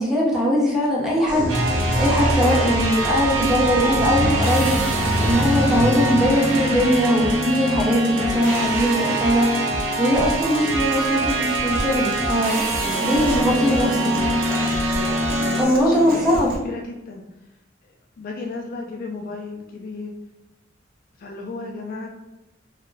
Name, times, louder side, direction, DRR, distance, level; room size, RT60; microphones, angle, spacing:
voice 1, 0.0-12.6 13.0-13.9 15.6-16.5, equal, ahead, -5 dB, 0.6 m, -21 dB
sound 1, 1.3-8.8, equal, 25° right, 0.9 m, -26 dB
sound 2, 1.5-15.7, right 1 dB, 90° right, 0.6 m, -24 dB
Human voice / Acoustic guitar, 10.1-16.6, right 2 dB, 50° right, 0.5 m, -33 dB
voice 2, 12.8-14.7 15.4-17.2 17.8-20.1 21.2-22.1, left 3 dB, 45° left, 1 dB, 0.3 m, -34 dB
2.3 x 2.1 x 3.1 m, 0.92 s
head